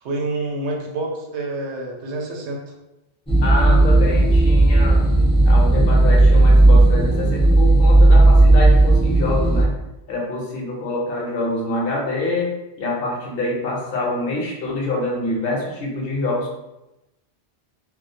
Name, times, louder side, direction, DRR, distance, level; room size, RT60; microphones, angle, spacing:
voice 1, 0.0-2.6, right 2 dB, 85° right, 0 dB, 0.9 m, -27 dB
sound 1, 3.3-9.6, right 2 dB, 10° left, 0.4 m, -13 dB
voice 2, 3.4-9.7 10.1-16.5, left 2 dB, 65° left, -2 dB, 0.7 m, -26 dB
2.3 x 2.0 x 2.6 m, 0.95 s
omnidirectional pair, 1.1 m